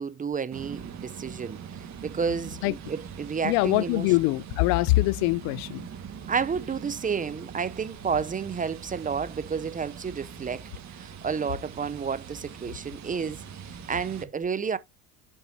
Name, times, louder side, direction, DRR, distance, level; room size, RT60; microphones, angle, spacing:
voice 1, 0.0-4.1 6.3-10.7 11.0-13.4 13.9-14.8, right 6 dB, 20° right, 0.5 m, -31 dB
sound 1, 0.5-14.2, right 7 dB, 40° right, 1.6 m, -42 dB
voice 2, 3.4-5.9, left 20 dB, 65° left, 0.5 m, -23 dB
9.4 x 5.4 x 2.7 m
supercardioid pair, 85°, 41 cm